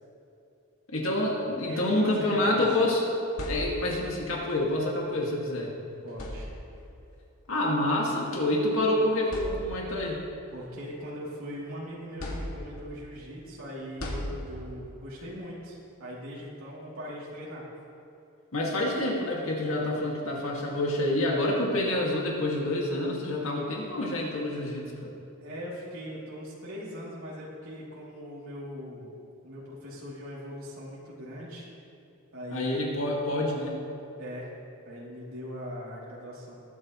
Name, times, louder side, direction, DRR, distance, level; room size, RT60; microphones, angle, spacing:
voice 1, 0.9-3.0 3.5-5.7 7.5-10.2 18.5-25.1 32.5-33.8, left 1 dB, 70° left, -2 dB, 2.1 m, -27 dB
voice 2, 1.6-2.6 6.0-6.5 10.5-17.7 25.4-29.1 29.4-31.7 32.3-32.7 34.2-34.5 34.8-36.6, equal, 80° right, -7 dB, 2.9 m, -40 dB
sound 1, 3.0-4.2 5.4-5.6 6.1-6.9 8.0-8.2 8.7-8.8 9.2-10.1 10.6-11.6 12.2-13.0 14.0-14.9, equal, 85° left, 2.2 m, -37 dB
21.0 x 9.5 x 3.1 m, 2.8 s
head